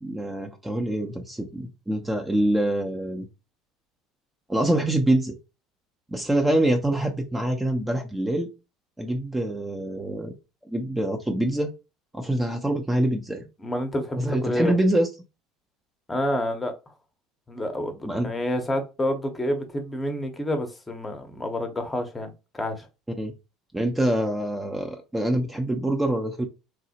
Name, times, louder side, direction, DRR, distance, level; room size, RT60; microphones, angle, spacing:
voice 1, 0.0-3.3 4.5-5.3 6.1-8.5 9.0-10.3 10.7-11.7 12.1-13.4 14.2-15.1 18.1-18.3 23.2-23.3 23.7-26.5, right 1 dB, 10° right, 0.5 m, -25 dB
voice 2, 13.6-14.7 16.1-16.7 17.5-22.9, left 1 dB, 15° left, 0.8 m, -28 dB
3.0 x 2.0 x 2.8 m
hypercardioid pair, 70°, 0 cm